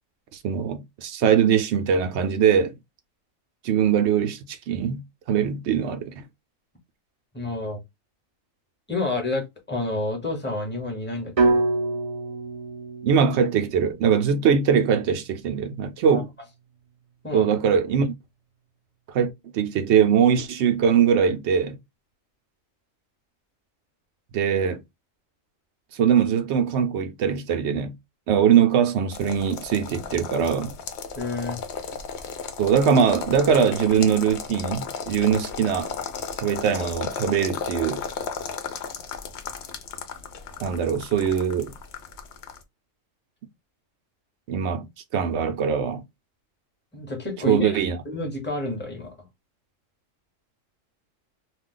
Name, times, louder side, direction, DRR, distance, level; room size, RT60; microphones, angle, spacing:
voice 1, 0.3-2.8 3.6-6.2 13.0-16.3 17.3-18.1 19.1-21.8 24.3-24.8 25.9-27.9 28.3-30.7 32.6-35.9 36.4-38.0 40.6-41.7 44.5-44.9 45.1-46.0 47.5-48.0, right 7 dB, 65° right, 0.8 m, -22 dB
voice 2, 7.3-7.8 8.9-11.6 16.1-16.2 17.2-17.5 31.2-31.6 46.9-47.8 48.0-49.1, left 2 dB, 10° left, 0.9 m, -29 dB
sound 1, 11.4-15.4, right 3 dB, 45° right, 0.4 m, -27 dB
sound 2, 29.1-42.6, left 6 dB, 65° left, 0.8 m, -35 dB
2.4 x 2.3 x 3.7 m
omnidirectional pair, 1.4 m